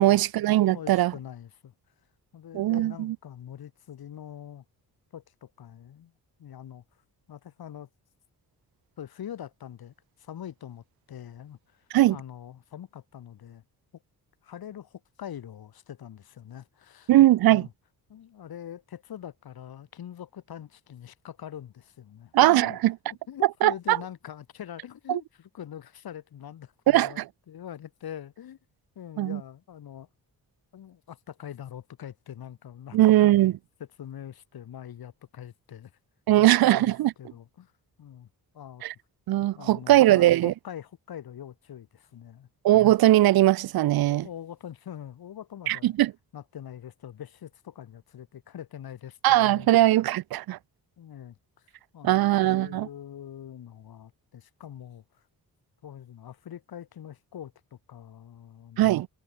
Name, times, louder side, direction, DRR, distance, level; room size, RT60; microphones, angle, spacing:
voice 1, 0.0-1.1 2.5-3.1 11.9-12.2 17.1-17.7 22.3-23.0 23.6-24.0 25.1-25.2 26.9-27.1 29.2-29.4 32.9-33.5 36.3-37.1 38.8-38.9 39.3-40.5 42.6-44.3 45.7-46.1 49.2-50.6 52.0-52.9 58.8-59.1, right 15 dB, 80° right, 0.6 m, -20 dB
voice 2, 0.7-1.7 2.3-4.6 5.1-6.1 6.4-6.8 7.3-7.9 9.0-13.6 14.4-17.1 17.5-17.7 18.1-22.8 23.0-28.6 28.9-30.1 30.7-33.3 34.0-35.9 36.4-36.9 37.2-37.7 38.0-38.3 38.5-38.8 39.5-42.5 44.1-45.9 46.3-49.7 51.0-51.4 51.9-55.0 55.8-59.0, left 10 dB, 80° left, 6.7 m, -43 dB
wide cardioid pair, 150°, 36 cm